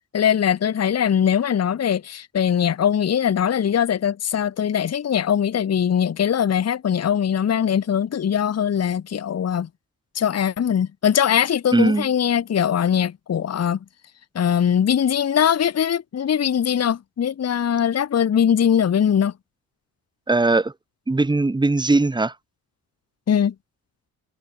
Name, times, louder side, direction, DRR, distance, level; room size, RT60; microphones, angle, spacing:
voice 1, 0.1-9.7 10.1-13.8 14.3-19.3 23.3-23.5, left 8 dB, 40° left, 0.9 m, -21 dB
voice 2, 11.7-12.1 20.3-20.7 21.1-22.3, right 2 dB, 10° right, 0.9 m, -19 dB
cardioid pair, 90°, 38 cm